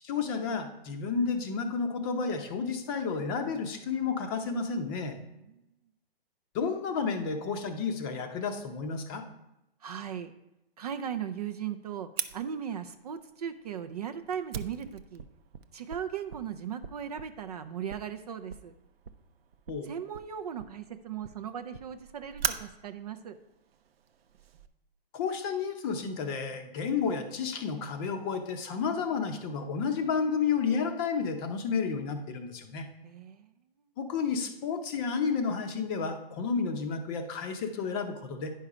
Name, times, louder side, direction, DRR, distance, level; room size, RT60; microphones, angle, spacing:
voice 1, 0.0-5.2 6.5-9.2 19.7-19.9 25.1-32.9 34.0-38.5, left 5 dB, 20° left, 6 dB, 0.7 m, -31 dB
voice 2, 5.3-5.6 9.8-10.3 10.8-15.3 15.7-18.7 19.8-23.4 33.0-33.5, right 8 dB, 40° right, 10 dB, 0.5 m, -38 dB
Fire, 12.2-24.7, right 7 dB, 70° right, 0.7 m, -42 dB
9.9 x 5.5 x 4.9 m, 0.89 s
hypercardioid pair, 145°, 31 cm